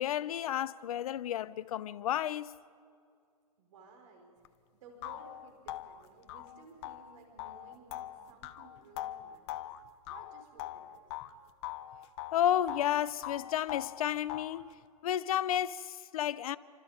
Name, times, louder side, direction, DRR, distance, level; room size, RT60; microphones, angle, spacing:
voice 1, 0.0-2.5 12.3-14.6 15.0-16.6, left 11 dB, 65° left, 0.8 m, -31 dB
voice 2, 3.6-4.4 4.7-9.7 10.1-11.0, right 3 dB, 60° right, 5.3 m, -56 dB
sound 1, 4.4-4.5 5.0-11.3 11.6-12.9 13.2-14.6, left 13 dB, 40° left, 1.0 m, -42 dB
28.0 x 25.5 x 5.2 m
hypercardioid pair, 135°, 20 cm